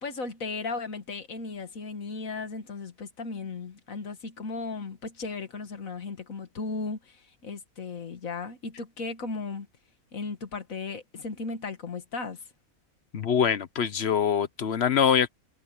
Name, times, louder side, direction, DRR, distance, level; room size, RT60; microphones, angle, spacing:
voice 1, 0.0-9.7 10.1-12.5, left 4 dB, 70° left, 2.1 m, -36 dB
voice 2, 13.1-15.3, left 8 dB, 50° left, 1.1 m, -24 dB
omnidirectional pair, 1.5 m